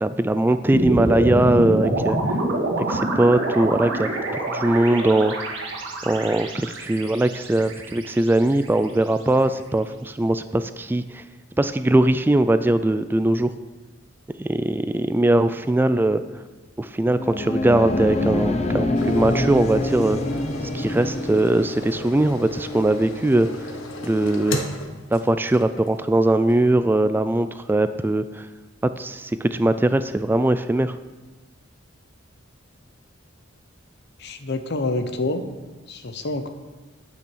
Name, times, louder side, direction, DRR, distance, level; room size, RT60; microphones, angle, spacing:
voice 1, 0.0-2.4 2.8-4.1 4.5-5.3 6.1-11.2 11.6-13.5 14.4-16.2 16.8-20.2 20.7-23.5 24.0-24.6 25.1-28.5 29.0-31.0, right 1 dB, 10° right, 11 dB, 0.3 m, -20 dB
sound 1, 0.7-9.0, right 1 dB, 70° right, 2.1 m, -26 dB
sound 2, 17.0-21.7, left 2 dB, 35° left, 0.7 m, -25 dB
sound 3, 18.9-26.0 26.5-26.6, left 1 dB, 85° left, 1.2 m, -33 dB
voice 2, 34.2-35.4 35.9-36.5, left 2 dB, 60° left, 8 dB, 0.9 m, -27 dB
8.6 x 8.6 x 6.2 m, 1.2 s
head